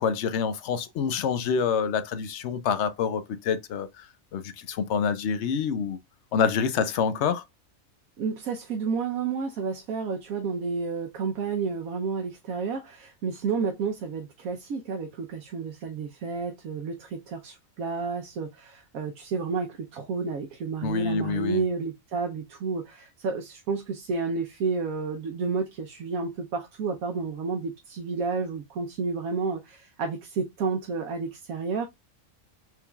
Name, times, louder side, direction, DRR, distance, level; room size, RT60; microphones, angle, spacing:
voice 1, 0.0-4.1 4.3-6.0 6.3-7.4 20.8-21.6, left 6 dB, 65° left, 0.8 m, -27 dB
voice 2, 8.2-31.9, right 4 dB, 85° right, 1.2 m, -31 dB
4.6 x 3.5 x 2.3 m
omnidirectional pair, 1.4 m